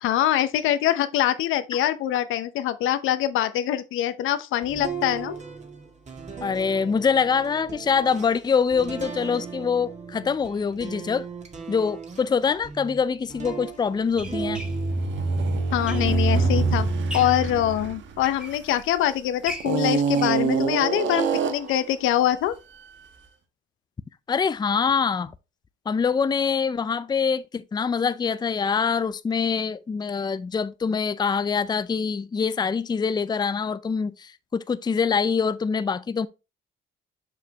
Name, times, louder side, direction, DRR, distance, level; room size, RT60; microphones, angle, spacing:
voice 1, 0.0-5.4 15.7-16.9 17.1-22.5, left 12 dB, 90° left, 0.7 m, -24 dB
sound 1, 4.6-15.2 15.7-18.0, right 5 dB, 35° right, 1.9 m, -38 dB
voice 2, 6.4-11.3 11.7-14.6 24.3-25.3 25.9-36.3, left 6 dB, 20° left, 0.4 m, -24 dB
sound 2, 12.6-12.7 13.5-16.4 16.8-17.5 18.0-19.0 19.4-22.0 22.3-22.4 22.7-22.8 23.2-23.3, equal, 5° right, 1.7 m, -41 dB
sound 3, 14.2-19.0 19.6-21.8, right 4 dB, 70° right, 1.1 m, -25 dB
6.7 x 5.2 x 2.9 m
cardioid pair, 90°, 20 cm